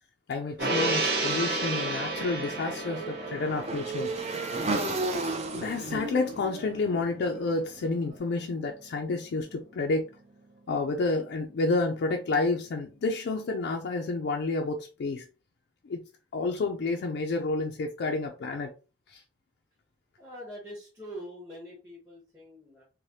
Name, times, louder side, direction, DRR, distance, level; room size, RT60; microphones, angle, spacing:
voice 1, 0.3-4.1 5.5-10.1 10.7-15.3 15.8-16.0 16.3-18.7 19.1-19.2, left 3 dB, 65° left, 0.4 m, -30 dB
Gong, 0.6-7.2 7.5-7.7, right 2 dB, 60° right, 0.8 m, -32 dB
Motorcycle / Engine, 1.7-7.9, right 2 dB, 35° right, 0.5 m, -34 dB
voice 2, 20.2-22.8, equal, 10° right, 1.0 m, -44 dB
3.2 x 2.1 x 2.6 m
head